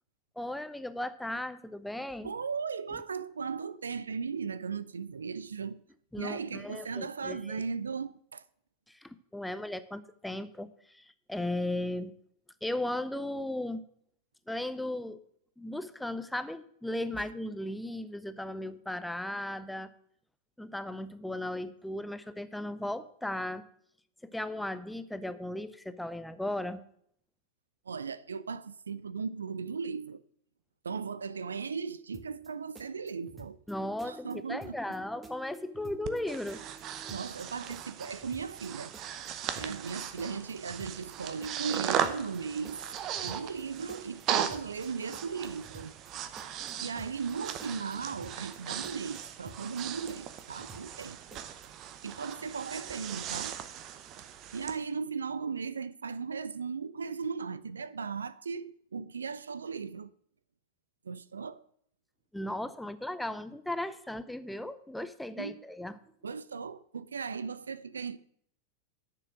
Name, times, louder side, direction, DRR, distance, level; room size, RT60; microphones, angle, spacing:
voice 1, 0.4-2.3 6.1-7.6 8.9-12.1 12.6-13.8 14.5-15.2 15.6-19.9 20.6-23.6 24.2-26.8 33.7-37.2 62.3-66.0, left 1 dB, 5° left, 0.7 m, -36 dB
voice 2, 2.2-5.8 6.2-8.4 27.9-30.2 30.8-33.6 34.0-34.8 37.1-39.0 39.5-42.8 43.2-45.9 46.8-51.4 52.0-53.5 54.5-60.1 61.0-61.6 65.4-65.6 66.2-68.2, right 5 dB, 70° right, 0.4 m, -37 dB
sound 1, 32.1-32.5 32.7-33.7 34.0-34.3 34.6-35.0 35.2-36.2 36.5-36.8 37.1-37.4 37.7-38.7 38.9-39.3 39.6-39.9 40.2-41.1 41.4-41.8 42.0-42.4 42.6-43.6 43.9-44.2 44.5-44.9 45.1-46.1 46.4-46.7 47.0-47.3 47.6-48.6 48.8-49.2 49.5-49.8 50.1-51.0 51.3-51.7, right 2 dB, 15° right, 1.4 m, -52 dB
Breathing, 36.0-54.8, right 9 dB, 35° right, 0.9 m, -38 dB
10.5 x 6.7 x 6.2 m
figure-of-eight pair, 90°, 0 cm